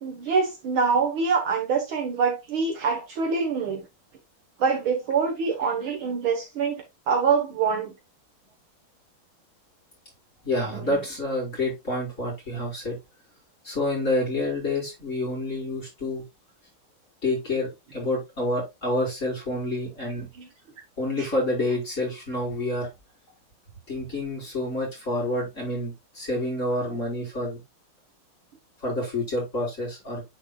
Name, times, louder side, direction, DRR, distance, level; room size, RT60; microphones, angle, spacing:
voice 1, 0.0-3.8 4.6-7.9 10.7-10.8 20.4-20.5 26.9-27.0, right 5 dB, 70° right, 2.1 m, -25 dB
voice 2, 10.4-13.0 13.6-16.2 17.2-20.3 21.0-22.9 23.9-27.6 28.8-30.2, left 1 dB, 35° left, 5.4 m, -28 dB
9.5 x 4.9 x 2.3 m
omnidirectional pair, 2.4 m